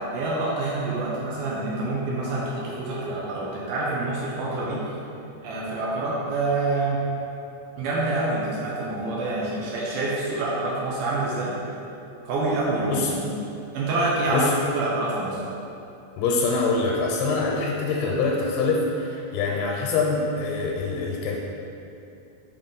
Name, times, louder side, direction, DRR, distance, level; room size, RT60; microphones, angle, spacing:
voice 1, 0.0-4.8 5.4-7.0 7.8-11.5 12.3-13.3 13.7-15.4, right 2 dB, 75° right, -5 dB, 2.2 m, -26 dB
voice 2, 16.2-21.4, left 3 dB, 90° left, -2 dB, 2.6 m, -24 dB
6.4 x 4.0 x 4.0 m, 2.7 s
omnidirectional pair, 4.4 m